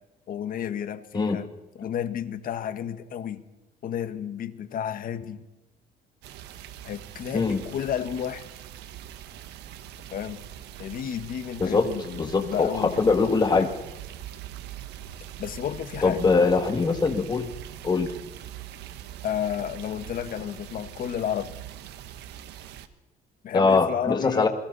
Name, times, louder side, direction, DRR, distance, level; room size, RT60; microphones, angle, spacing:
voice 1, 0.3-1.5 1.7-3.4 3.8-5.4 6.8-8.5 10.1-10.4 10.8-13.3 15.4-16.3 19.2-21.6 23.4-24.5, left 9 dB, 55° left, 10 dB, 1.7 m, -32 dB
sound 1, 6.2-22.9, right 11 dB, 85° right, 1.4 m, -42 dB
voice 2, 12.2-13.7 16.0-17.5 17.8-18.1 23.5-24.5, left 4 dB, 25° left, 5 dB, 2.4 m, -22 dB
28.5 x 23.0 x 4.3 m, 1.0 s
cardioid pair, 110°, 17 cm